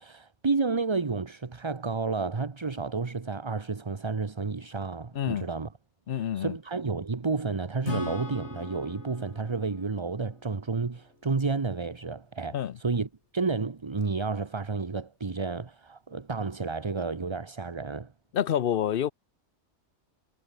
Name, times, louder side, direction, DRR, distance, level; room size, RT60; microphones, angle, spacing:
voice 1, 0.0-5.7 6.1-18.1, right 4 dB, 25° right, 0.9 m, -31 dB
voice 2, 5.2-5.5 6.1-6.5 12.5-12.7 18.3-19.1, left 10 dB, 60° left, 0.8 m, -27 dB
Acoustic guitar / Strum, 7.8-11.4, left 3 dB, 75° left, 3.2 m, -39 dB
omnidirectional pair, 1.2 m